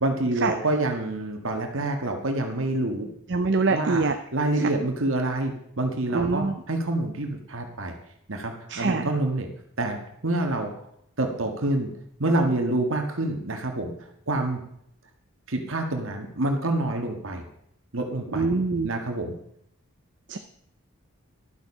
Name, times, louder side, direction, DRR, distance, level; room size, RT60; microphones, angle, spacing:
voice 1, 0.0-3.1 3.7-4.0 4.3-7.9 8.3-9.5 9.8-10.7 11.2-11.9 12.2-13.9 14.3-14.6 15.5-17.4 17.9-18.5 18.8-19.4, right 2 dB, 70° right, 4 dB, 1.7 m, -27 dB
voice 2, 3.3-4.1 6.1-6.6 8.7-9.1 18.3-18.9 20.3-20.4, right 3 dB, 55° right, 7 dB, 0.6 m, -24 dB
12.0 x 7.3 x 5.5 m, 0.72 s
head